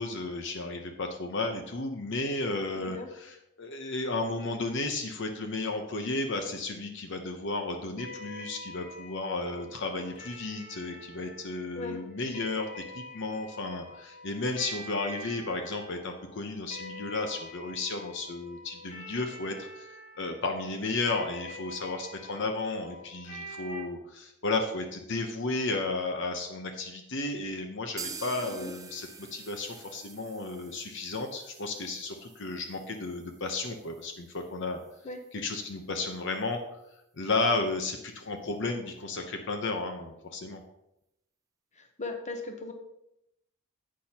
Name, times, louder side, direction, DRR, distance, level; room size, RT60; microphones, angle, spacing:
voice 1, 0.0-19.9 20.2-34.8 35.3-36.6 37.2-40.6, left 3 dB, 55° left, 5 dB, 0.9 m, -33 dB
voice 2, 2.7-3.1 11.7-12.0 28.4-28.7 35.0-35.2 41.8-42.7, left 2 dB, 35° left, 4 dB, 1.0 m, -38 dB
sound 1, 8.0-23.8, equal, 90° left, 2.5 m, -46 dB
sound 2, 28.0-35.7 36.0-36.1 36.4-36.5 36.9-37.0, right 5 dB, 15° right, 0.5 m, -48 dB
10.0 x 8.5 x 2.9 m, 0.83 s
head